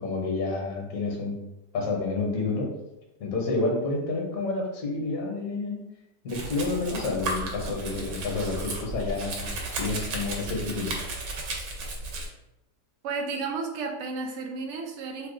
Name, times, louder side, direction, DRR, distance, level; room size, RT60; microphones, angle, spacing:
voice 1, 0.0-1.3 1.7-2.7 3.2-5.8 6.2-10.9, left 3 dB, 60° left, -1 dB, 1.2 m, -29 dB
Domestic sounds home sounds, 6.3-12.3, right 2 dB, 85° right, 1.4 m, -34 dB
voice 2, 13.0-15.3, right 4 dB, 65° right, 2 dB, 0.7 m, -32 dB
3.1 x 2.3 x 3.6 m, 0.89 s
omnidirectional pair, 1.8 m